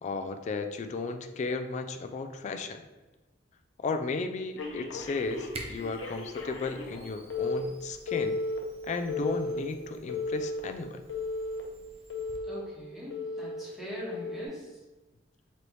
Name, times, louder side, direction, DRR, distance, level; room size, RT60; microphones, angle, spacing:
voice 1, 0.0-2.8 3.8-8.4 8.8-11.0, left 3 dB, 40° left, 7 dB, 0.3 m, -34 dB
Telephone, 4.6-7.0 7.3-7.6 8.1-8.6 9.1-9.6 10.1-10.6 11.1-11.6 12.1-12.6 13.1-13.6 14.1-14.5, left 3 dB, 80° left, 0.7 m, -34 dB
Camera, 4.9-12.4, right 2 dB, 30° right, 0.6 m, -50 dB
voice 2, 12.5-14.8, left 1 dB, ahead, -8 dB, 1.3 m, -41 dB
4.0 x 3.2 x 3.0 m, 1.2 s
head